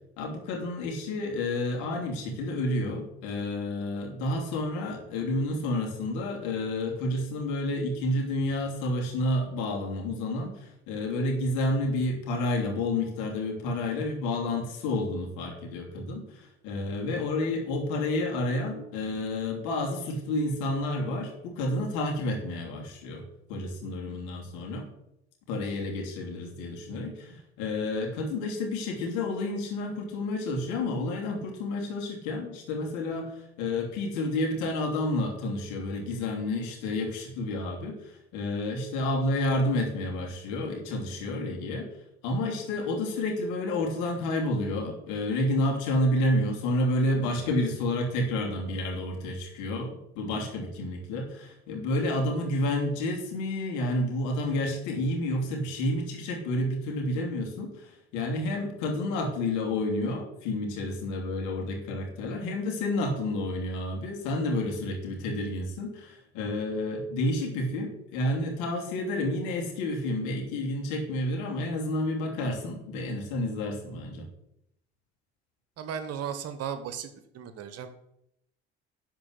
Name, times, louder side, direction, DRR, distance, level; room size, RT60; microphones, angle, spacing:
voice 1, 0.2-23.2 23.5-24.9 25.5-41.9 42.2-74.2, left 1 dB, 60° left, 0 dB, 2.8 m, -30 dB
voice 2, 75.8-77.9, right 8 dB, 45° right, 11 dB, 1.2 m, -36 dB
11.5 x 4.5 x 7.8 m, 0.80 s
figure-of-eight pair, 60°, 34 cm